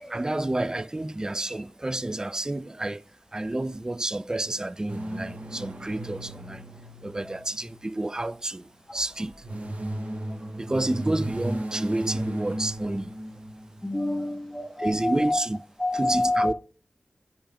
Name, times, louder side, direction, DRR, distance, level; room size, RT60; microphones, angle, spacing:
voice 1, 0.1-3.0 3.3-6.6 7.0-9.3 10.6-13.1 14.8-15.6 15.9-16.5, right 2 dB, 25° right, 0.3 m, -29 dB
sound 1, 4.9-8.3 9.2-14.0, right 1 dB, 50° right, 0.9 m, -35 dB
voice 2, 13.8-15.4 15.8-16.5, left 2 dB, 15° left, 1.0 m, -27 dB
9.8 x 5.4 x 2.2 m
cardioid pair, 45°, 3 cm